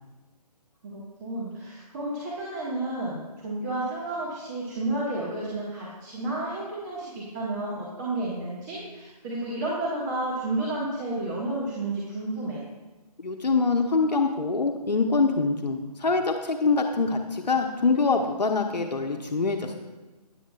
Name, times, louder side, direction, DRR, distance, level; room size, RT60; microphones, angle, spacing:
voice 1, 0.8-12.6, right 2 dB, 25° right, -7 dB, 1.6 m, -31 dB
voice 2, 13.2-19.7, left 4 dB, 75° left, 3 dB, 0.9 m, -24 dB
13.5 x 10.0 x 2.4 m, 1.2 s
figure-of-eight pair, 150°, 21 cm